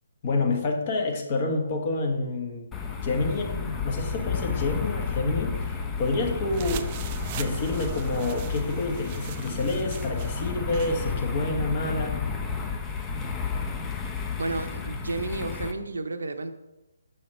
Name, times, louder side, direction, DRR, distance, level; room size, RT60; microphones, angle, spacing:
voice 1, 0.2-2.7 3.0-6.9 7.4-12.2, left 2 dB, 40° left, 2 dB, 1.3 m, -28 dB
sound 1, 2.7-15.7, left 5 dB, 15° left, 0.6 m, -32 dB
sound 2, 6.5-11.0, right 10 dB, 30° right, 0.3 m, -40 dB
voice 2, 14.4-16.5, right 3 dB, 75° right, 7 dB, 0.8 m, -32 dB
6.7 x 5.5 x 4.3 m, 0.95 s
figure-of-eight pair, 145°, 0 cm